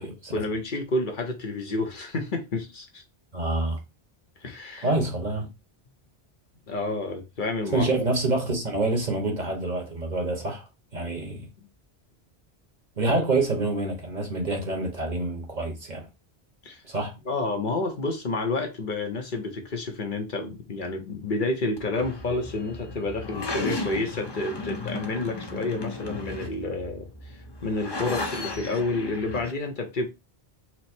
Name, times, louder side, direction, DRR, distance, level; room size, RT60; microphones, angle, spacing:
voice 1, 0.0-3.0 4.4-4.9 6.7-7.9 16.6-16.8 17.3-30.1, left 2 dB, 55° left, 0.9 m, -30 dB
voice 2, 3.3-3.8 4.8-5.5 7.7-10.6 10.9-11.4 13.0-16.1 16.9-17.1, right 2 dB, 45° right, 1.1 m, -27 dB
sound 1, 21.8-29.5, left 3 dB, 30° left, 0.5 m, -35 dB
4.5 x 2.0 x 4.2 m
omnidirectional pair, 1.1 m